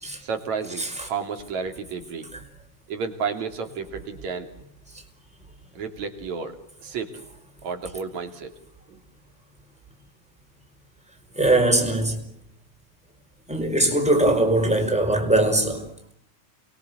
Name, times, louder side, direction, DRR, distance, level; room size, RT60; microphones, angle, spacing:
voice 1, 0.2-2.3 2.9-4.5 5.7-7.1 7.6-8.5 8.9-9.0, right 5 dB, 65° right, 4.3 m, -32 dB
voice 2, 0.8-1.1 11.3-12.2 13.5-15.8, right 1 dB, ahead, 5.0 m, -21 dB
29.5 x 22.5 x 8.1 m
omnidirectional pair, 3.5 m